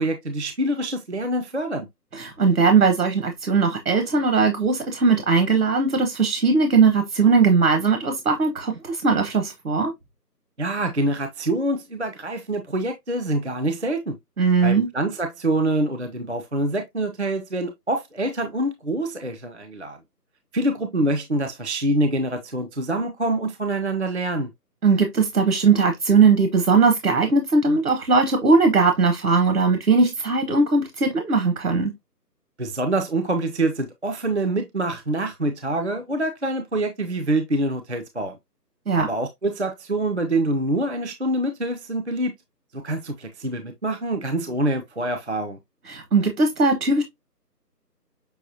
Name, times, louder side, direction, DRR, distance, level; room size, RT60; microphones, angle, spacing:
voice 1, 0.0-1.9 10.6-14.2 14.6-20.0 20.5-24.5 32.6-38.4 38.9-42.3 42.7-45.6, right 1 dB, 45° right, 0.5 m, -25 dB
voice 2, 2.1-9.9 14.4-14.9 24.8-31.9 38.9-39.1 45.9-47.0, right 4 dB, 60° right, 1.1 m, -19 dB
6.2 x 2.8 x 2.7 m
figure-of-eight pair, 170°, 50 cm